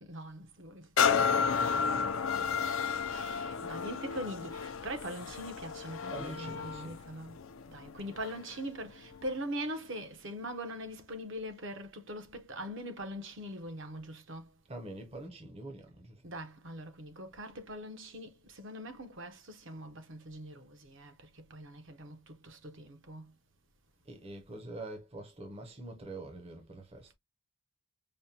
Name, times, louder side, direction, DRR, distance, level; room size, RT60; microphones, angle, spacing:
voice 1, 0.0-0.9 3.1-7.4 7.7-14.5 16.2-23.3, equal, 60° right, 0.8 m, -42 dB
sound 1, 1.0-8.6 9.1-9.2, left 6 dB, 65° left, 0.4 m, -32 dB
voice 2, 1.2-2.7 6.1-6.9 14.7-16.3 24.0-27.1, right 2 dB, 30° right, 0.7 m, -45 dB
5.1 x 2.2 x 2.7 m
head